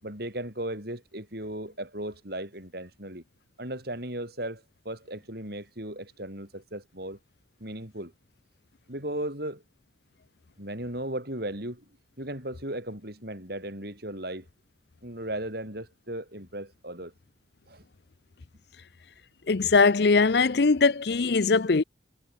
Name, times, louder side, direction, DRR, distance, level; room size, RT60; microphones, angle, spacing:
voice 1, 0.0-3.2 3.6-7.2 7.6-8.1 8.9-9.6 10.6-11.8 12.2-14.5 15.0-17.1 17.7-17.8, right 1 dB, 55° right, 8.0 m, -36 dB
voice 2, 19.5-21.8, left 4 dB, 60° left, 0.6 m, -21 dB
head